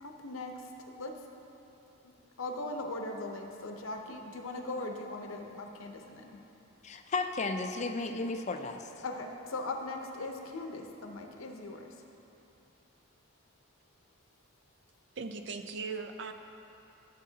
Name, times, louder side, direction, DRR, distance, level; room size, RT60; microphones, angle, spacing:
voice 1, 0.0-1.2 2.0-6.4 9.0-12.1, left 2 dB, 80° left, 3 dB, 0.8 m, -40 dB
voice 2, 6.8-8.9, left 3 dB, 35° left, 5 dB, 0.4 m, -34 dB
voice 3, 15.2-16.3, right 4 dB, 55° right, 6 dB, 0.5 m, -38 dB
14.0 x 7.4 x 2.8 m, 2.9 s
head